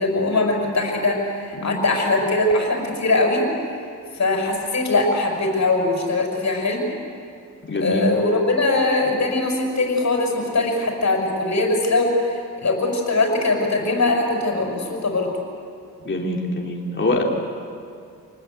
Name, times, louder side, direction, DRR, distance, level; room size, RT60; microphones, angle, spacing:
voice 1, 0.0-3.5 4.1-6.8 7.8-15.4, left 2 dB, 55° left, 1 dB, 6.3 m, -21 dB
voice 2, 7.6-8.0 16.1-17.2, left 2 dB, 35° left, -1 dB, 3.4 m, -24 dB
28.5 x 19.5 x 8.3 m, 2.4 s
cardioid pair, 75°, 32 cm